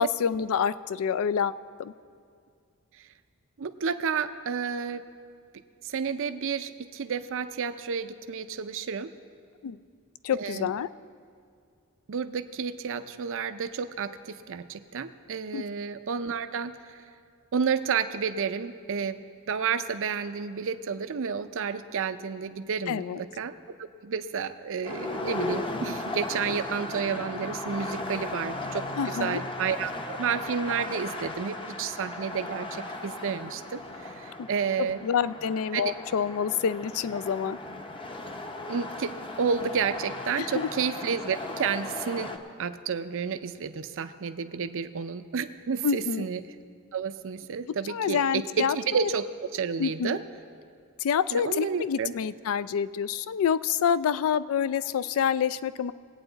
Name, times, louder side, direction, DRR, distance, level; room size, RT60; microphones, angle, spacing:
voice 1, 0.0-1.5 1.8-1.9 9.6-9.8 10.2-10.9 15.5-15.7 22.9-23.2 29.0-29.4 34.4-34.5 34.8-37.6 40.4-40.7 45.8-46.3 47.9-49.1 49.8-50.2 51.0-55.9, left 7 dB, 65° left, 16 dB, 0.3 m, -27 dB
voice 2, 3.6-5.0 5.8-9.1 10.3-10.7 12.1-17.0 17.5-23.5 24.0-35.0 35.7-35.9 38.7-42.3 42.6-46.4 46.9-49.3 49.5-50.2 51.3-52.1, right 6 dB, 65° right, 11 dB, 0.5 m, -31 dB
sound 1, 24.8-42.4, left 2 dB, 25° left, 0.7 m, -36 dB
21.0 x 8.8 x 4.0 m, 2.2 s
head